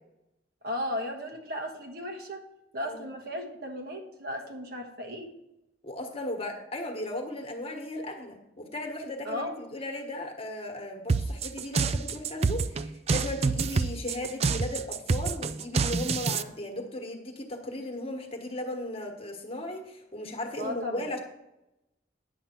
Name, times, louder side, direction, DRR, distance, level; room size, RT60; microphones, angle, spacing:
voice 1, 0.6-2.4 2.7-5.3 9.2-9.6 20.6-21.1, left 1 dB, 55° right, 3 dB, 1.4 m, -35 dB
voice 2, 5.8-21.2, left 1 dB, 35° left, 2 dB, 1.4 m, -36 dB
sound 1, 11.1-16.4, right 4 dB, 35° right, 0.4 m, -27 dB
10.0 x 7.6 x 4.5 m, 0.89 s
head